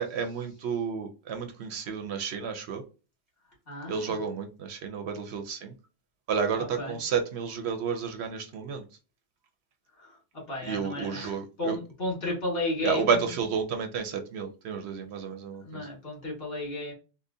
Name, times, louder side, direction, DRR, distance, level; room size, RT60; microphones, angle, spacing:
voice 1, 0.0-2.8 3.9-5.7 6.3-8.8 10.6-11.8 12.8-15.9, right 6 dB, 70° right, 6 dB, 0.8 m, -31 dB
voice 2, 3.7-4.2 6.6-6.9 10.5-13.1 15.6-16.9, left 2 dB, 55° left, -3 dB, 1.9 m, -33 dB
3.7 x 2.1 x 2.6 m, 0.32 s
omnidirectional pair, 1.2 m